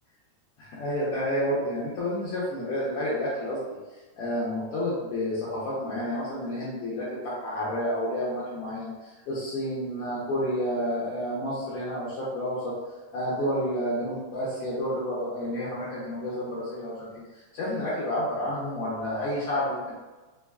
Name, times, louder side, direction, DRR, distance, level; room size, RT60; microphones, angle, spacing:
voice 1, 0.6-3.6 4.2-12.7 13.1-19.9, equal, 75° left, -8 dB, 1.4 m, -30 dB
5.3 x 2.1 x 2.2 m, 1.2 s
omnidirectional pair, 3.3 m